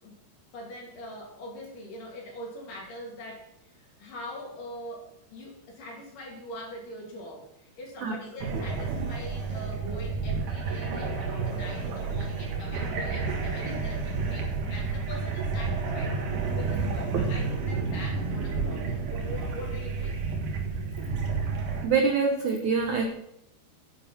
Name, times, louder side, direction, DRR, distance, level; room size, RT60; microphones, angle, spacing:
voice 1, 0.5-16.2 16.5-20.2, left 1 dB, 55° left, -2 dB, 4.1 m, -43 dB
sound 1, 8.4-21.8, right 4 dB, 55° right, 2.8 m, -30 dB
voice 2, 21.8-23.1, right 5 dB, 75° right, 3 dB, 1.7 m, -25 dB
10.0 x 9.9 x 4.4 m, 0.76 s
omnidirectional pair, 4.9 m